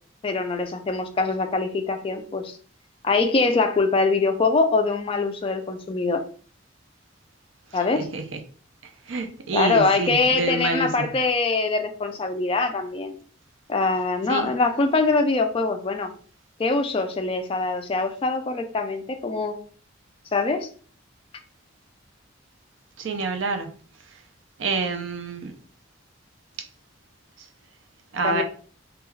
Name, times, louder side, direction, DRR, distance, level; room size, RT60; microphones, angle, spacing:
voice 1, 0.2-2.6 3.0-6.2 7.7-8.1 9.5-13.2 13.7-16.1 16.6-19.6 20.3-20.7 28.2-28.4, left 3 dB, 30° left, 0.3 m, -23 dB
voice 2, 7.7-8.4 9.1-11.1 14.3-14.5 23.0-23.7 24.6-25.5 27.4-27.5 28.1-28.4, right 3 dB, 65° right, 0.5 m, -27 dB
2.3 x 2.2 x 3.1 m
head